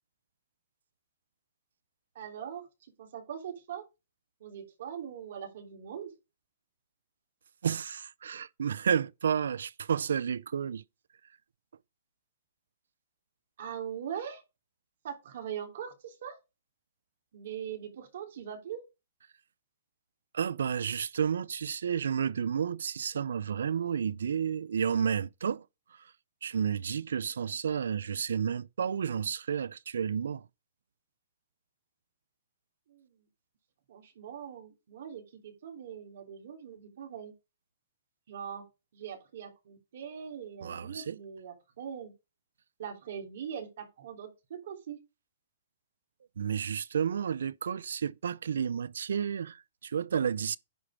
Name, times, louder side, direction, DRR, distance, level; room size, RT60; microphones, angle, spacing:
voice 1, 2.1-2.6 3.0-3.8 4.4-6.1 13.6-14.4 15.0-16.3 17.3-18.8 32.9-33.2 33.9-37.3 38.3-38.6 38.9-42.1 42.8-45.0, right 8 dB, 65° right, 3.3 m, -41 dB
voice 2, 7.6-10.8 20.3-25.6 25.9-26.1 26.4-30.5 40.6-41.2 46.4-50.6, right 7 dB, 85° right, 0.5 m, -31 dB
10.0 x 4.3 x 5.0 m
hypercardioid pair, 140°, 0 cm